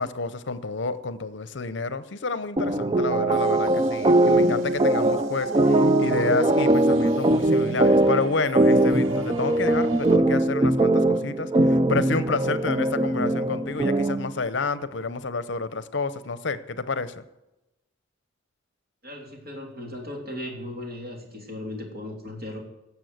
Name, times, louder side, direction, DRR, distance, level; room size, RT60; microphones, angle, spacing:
voice 1, 0.0-17.2, left 4 dB, 60° left, 13 dB, 0.7 m, -29 dB
sound 1, 2.6-14.3, right 1 dB, 25° right, 0.4 m, -21 dB
sound 2, 3.3-10.2, right 2 dB, 80° right, 1.0 m, -37 dB
voice 2, 19.0-22.6, left 1 dB, 50° right, 0 dB, 3.3 m, -37 dB
17.0 x 7.1 x 7.9 m, 0.97 s
head